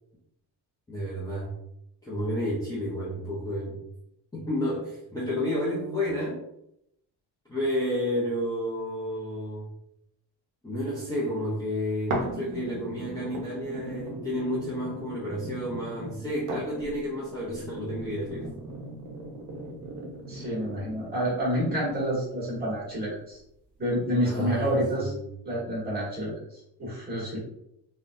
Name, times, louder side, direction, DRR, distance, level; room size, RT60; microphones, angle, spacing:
voice 1, 0.9-1.5 2.0-3.8 4.3-6.4 7.5-9.7 10.6-18.5 24.2-25.3, equal, 10° left, -9 dB, 0.6 m, -31 dB
sound 1, 12.1-22.1 22.7-22.8, right 2 dB, 55° right, 0.8 m, -38 dB
voice 2, 20.3-23.4 23.8-25.1 25.4-27.4, equal, 25° right, -6 dB, 1.5 m, -29 dB
3.7 x 2.3 x 2.5 m, 0.79 s
cardioid pair, 160°, 40 cm